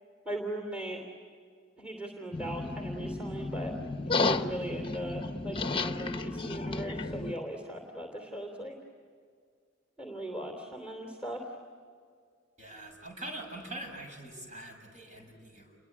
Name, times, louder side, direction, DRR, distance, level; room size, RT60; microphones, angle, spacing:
voice 1, 0.2-1.0 1.8-3.7 4.1-8.8 10.0-11.4, right 1 dB, 5° right, 3 dB, 3.1 m, -38 dB
sound 1, 2.3-7.3, left 3 dB, 25° left, 1.0 m, -33 dB
voice 2, 12.6-15.8, right 1 dB, 40° right, 2 dB, 6.9 m, -43 dB
29.5 x 22.5 x 8.6 m, 2.1 s
head